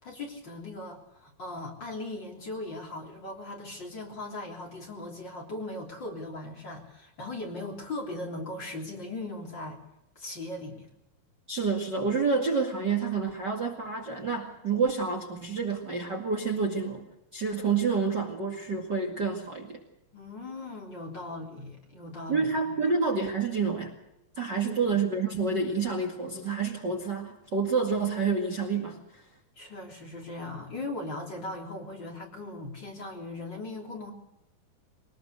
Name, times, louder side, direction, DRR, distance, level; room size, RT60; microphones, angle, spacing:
voice 1, 0.0-9.8 10.2-10.9 20.1-22.8 24.6-25.0 29.6-34.1, left 2 dB, 30° left, 0 dB, 3.7 m, -39 dB
voice 2, 11.5-17.1 17.3-19.8 22.3-24.0 24.4-29.2, right 4 dB, 35° right, 2 dB, 2.3 m, -28 dB
23.0 x 20.0 x 6.6 m, 0.85 s
omnidirectional pair, 4.3 m